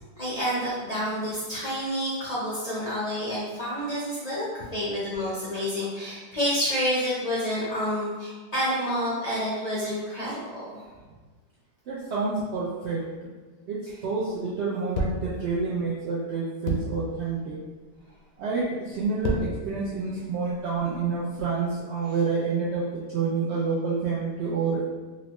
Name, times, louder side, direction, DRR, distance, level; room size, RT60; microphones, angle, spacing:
voice 1, 0.2-10.8 13.9-14.0, equal, 50° left, -8 dB, 0.4 m, -29 dB
voice 2, 11.9-13.3 13.7-17.6 18.4-24.8, right 4 dB, 75° right, -6 dB, 0.6 m, -28 dB
sound 1, 14.9-15.4 16.6-17.0 17.8-18.1 18.9-19.7 20.3-21.2, equal, 70° left, 0.9 m, -30 dB
3.9 x 2.1 x 2.9 m, 1.4 s
omnidirectional pair, 1.7 m